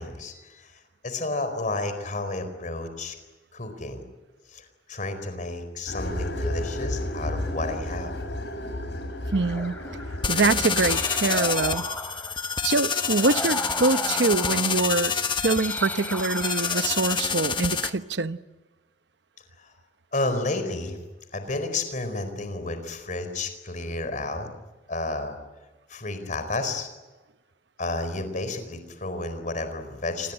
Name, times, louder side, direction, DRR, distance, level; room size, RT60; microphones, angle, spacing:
voice 1, 0.0-3.1 3.5-4.0 4.5-8.2 19.6-19.7 20.1-21.0 21.3-24.5 24.9-25.4 25.9-26.9 27.8-30.3, left 2 dB, 45° left, 4.5 m, -31 dB
sound 1, 5.9-11.7, left 1 dB, 75° left, 6.2 m, -32 dB
sound 2, 9.3-17.9, left 1 dB, 10° left, 3.7 m, -37 dB
voice 2, 9.3-9.7 10.3-11.8 12.6-15.1 15.4-18.4, right 3 dB, 70° right, 0.9 m, -24 dB
sound 3, 10.2-17.9, left 6 dB, 30° left, 1.3 m, -27 dB
28.0 x 21.0 x 8.9 m
head